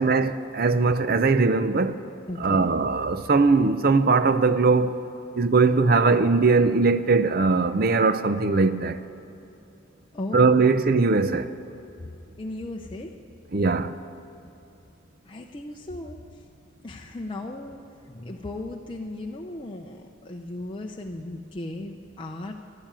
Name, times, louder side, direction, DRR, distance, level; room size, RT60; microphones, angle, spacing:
voice 1, 0.0-2.0 2.4-5.0 5.3-9.0 10.3-11.5 13.5-14.0, right 4 dB, 45° right, 0.5 m, -20 dB
voice 2, 2.3-2.7 10.1-10.7 12.0-12.1 12.4-13.1 15.2-16.4 16.8-22.6, left 2 dB, 25° left, 0.6 m, -36 dB
12.0 x 12.0 x 8.9 m
head